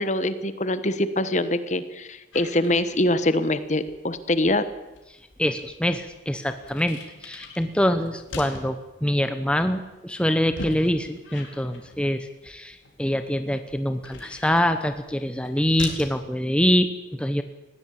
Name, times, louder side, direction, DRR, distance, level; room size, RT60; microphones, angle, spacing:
voice 1, 0.0-4.7, left 1 dB, 40° left, 13 dB, 1.2 m, -24 dB
sound 1, 2.3-16.2, left 2 dB, 90° left, 4.0 m, -43 dB
voice 2, 5.4-17.4, equal, 5° left, 9 dB, 0.9 m, -25 dB
19.5 x 16.5 x 8.6 m, 1.1 s
head